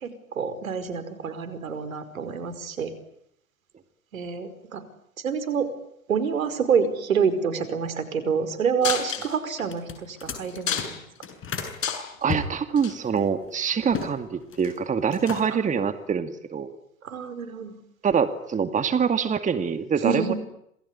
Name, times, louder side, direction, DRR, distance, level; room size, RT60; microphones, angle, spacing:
voice 1, 0.0-2.9 4.1-4.8 5.2-5.7 6.1-11.0 15.7-15.8 17.0-17.7 20.0-20.4, right 6 dB, 75° right, 12 dB, 5.2 m, -27 dB
sound 1, 8.8-9.6 10.1-10.2 10.5-11.2 11.6-12.2 12.8-12.9 13.9-14.0, left 8 dB, 70° left, 6.1 m, -29 dB
sound 2, 9.6-11.8 12.3-14.1 14.4-14.8 15.1-15.7, left 6 dB, 30° left, 7.6 m, -34 dB
voice 2, 12.2-16.8 18.0-20.3, right 6 dB, 20° right, 10 dB, 2.2 m, -25 dB
28.0 x 20.5 x 10.0 m, 0.75 s
figure-of-eight pair, 95°, 41 cm